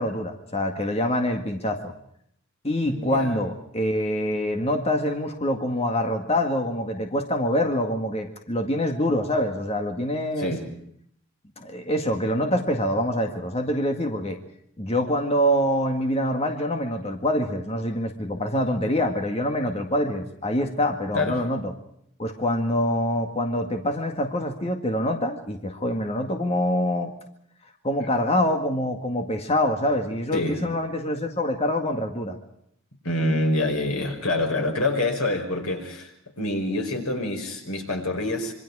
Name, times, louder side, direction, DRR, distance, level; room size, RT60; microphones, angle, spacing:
voice 1, 0.0-1.9 2.6-10.5 11.6-14.4 14.8-21.7 22.2-27.1 27.8-32.4, left 1 dB, 30° left, 4 dB, 1.9 m, -25 dB
voice 2, 2.8-3.3 10.4-10.6 21.1-21.4 30.3-30.6 33.0-38.5, left 1 dB, 90° left, 4 dB, 5.4 m, -26 dB
26.5 x 24.5 x 4.9 m, 0.68 s
head